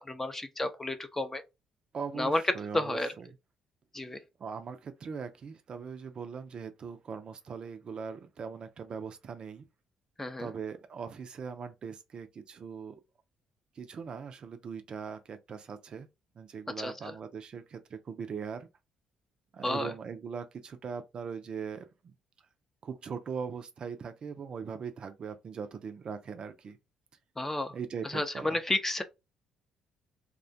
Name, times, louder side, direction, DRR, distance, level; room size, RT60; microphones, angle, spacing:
voice 1, 0.0-1.4 2.2-2.4 2.7-3.1 3.9-4.2 10.2-10.5 16.8-16.9 19.6-19.9 27.4-27.7 28.0-29.0, left 2 dB, 15° left, 0.5 m, -31 dB
voice 2, 1.9-3.3 4.4-9.6 10.4-13.0 13.8-16.1 16.4-18.7 19.5-22.1 22.8-26.8 27.7-28.6, right 6 dB, 45° right, 0.4 m, -40 dB
2.3 x 2.1 x 2.5 m
figure-of-eight pair, 45°, 2 cm